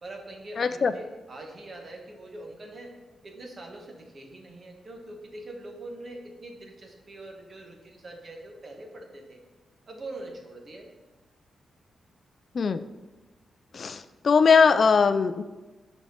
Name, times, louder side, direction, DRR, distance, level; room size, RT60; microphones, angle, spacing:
voice 1, 0.0-3.0 3.2-9.4 9.9-10.9, right 2 dB, 45° right, 2 dB, 1.4 m, -43 dB
voice 2, 0.6-0.9 12.5-12.8 13.7-15.4, left 5 dB, 50° left, 12 dB, 0.4 m, -21 dB
6.2 x 4.3 x 6.4 m, 1.2 s
cardioid pair, 85°, 0 cm